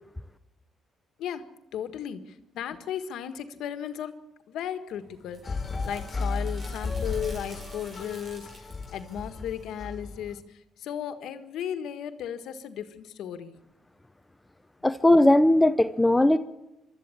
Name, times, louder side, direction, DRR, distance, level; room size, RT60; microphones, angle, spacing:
voice 1, 1.2-4.2 4.5-13.6, left 9 dB, 80° left, 9 dB, 1.6 m, -36 dB
sound 1, 4.9-10.4, right 2 dB, 50° right, 6.2 m, -51 dB
sound 2, 5.4-10.3, left 4 dB, 30° left, 2.1 m, -34 dB
voice 2, 14.8-16.4, left 1 dB, 10° left, 11 dB, 0.8 m, -19 dB
24.5 x 13.0 x 8.5 m, 0.94 s
cardioid pair, 90°, 0 cm